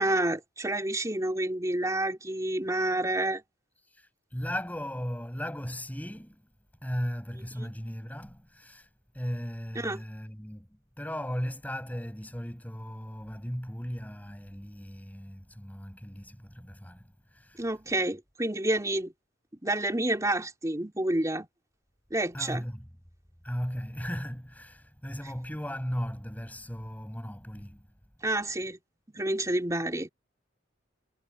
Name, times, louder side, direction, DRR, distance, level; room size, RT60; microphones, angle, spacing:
voice 1, 0.0-3.4 7.6-7.7 9.7-10.0 17.6-19.1 19.5-21.5 22.1-22.6 28.2-28.8 29.1-30.1, right 1 dB, 15° right, 3.0 m, -29 dB
voice 2, 3.8-6.4 6.8-8.9 9.1-17.6 22.3-22.9 23.4-27.9, equal, 10° left, 6.6 m, -37 dB
head